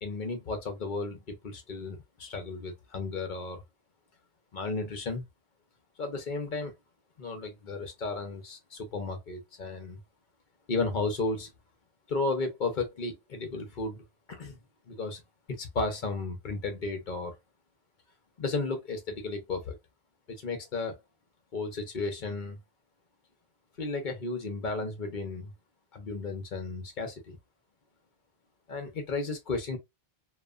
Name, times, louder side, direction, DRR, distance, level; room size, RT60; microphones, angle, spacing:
voice 1, 0.0-3.6 4.5-5.2 6.0-6.7 7.2-10.0 10.7-11.5 12.1-14.6 14.9-15.2 15.5-17.3 18.4-19.8 20.3-21.0 21.5-22.6 23.8-25.5 25.9-27.4 28.7-29.8, left 3 dB, 55° left, 0.8 m, -34 dB
2.9 x 2.3 x 2.3 m
omnidirectional pair, 1.1 m